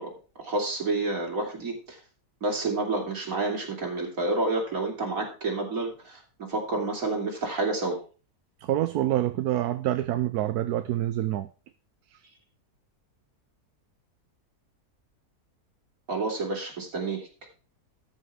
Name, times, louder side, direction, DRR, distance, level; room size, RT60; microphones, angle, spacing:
voice 1, 0.0-2.0 2.4-8.0 16.1-17.3, right 2 dB, 60° right, 3.5 m, -29 dB
voice 2, 8.6-11.5 12.1-12.2, right 13 dB, 75° right, 1.2 m, -27 dB
13.5 x 5.9 x 4.8 m
omnidirectional pair, 1.7 m